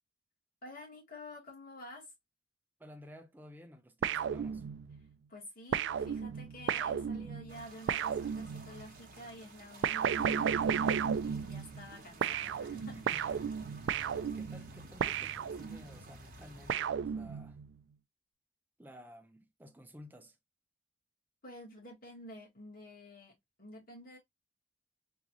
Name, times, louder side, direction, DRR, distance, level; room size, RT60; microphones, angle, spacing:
voice 1, 0.6-2.1 5.0-13.3 21.4-24.2, left 1 dB, 50° left, 1.9 m, -50 dB
voice 2, 2.8-4.6 13.1-13.4 14.2-17.6 18.8-20.4, left 1 dB, 10° right, 0.6 m, -54 dB
sound 1, 4.0-5.0 5.7-8.9 9.8-11.9 12.2-16.0 16.7-17.7, right 7 dB, 75° right, 0.3 m, -34 dB
sound 2, 7.5-16.7, right 2 dB, 50° right, 0.9 m, -53 dB
3.7 x 2.5 x 3.0 m
head